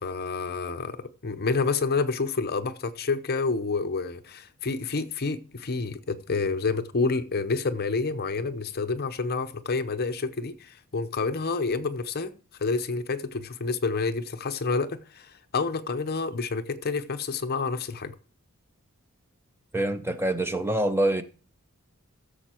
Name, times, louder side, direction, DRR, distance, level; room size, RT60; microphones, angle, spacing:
voice 1, 0.0-12.3 12.6-18.1, left 4 dB, 45° left, 0.7 m, -29 dB
voice 2, 19.7-21.2, right 1 dB, 10° right, 0.6 m, -25 dB
15.0 x 6.9 x 4.4 m
head